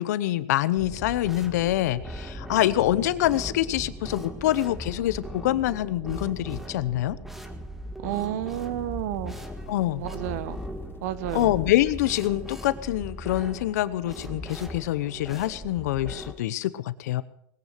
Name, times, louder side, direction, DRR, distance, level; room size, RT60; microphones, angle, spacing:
voice 1, 0.0-7.2 9.7-10.0 11.3-17.2, left 14 dB, 85° left, 16 dB, 0.8 m, -25 dB
sound 1, 0.8-16.3, right 1 dB, 5° right, 1.8 m, -39 dB
voice 2, 8.0-9.3 9.9-10.6 11.0-11.5, right 13 dB, 75° right, 16 dB, 1.2 m, -31 dB
sound 2, 8.3-13.6, left 7 dB, 25° left, 1.0 m, -45 dB
20.0 x 9.3 x 6.7 m, 0.72 s
supercardioid pair, 125°, 9 cm